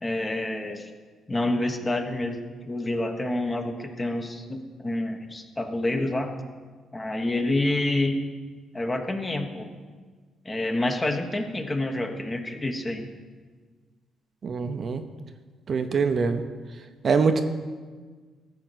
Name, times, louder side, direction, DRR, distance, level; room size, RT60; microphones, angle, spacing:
voice 1, 0.0-0.9 1.3-6.3 6.9-8.2 8.7-9.7 10.4-13.1, left 1 dB, 20° left, 5 dB, 1.2 m, -28 dB
voice 2, 14.4-15.0 15.7-16.4 17.0-17.4, right 5 dB, 50° right, 7 dB, 0.8 m, -23 dB
13.5 x 5.2 x 8.0 m, 1.5 s
cardioid pair, 90°, 0 cm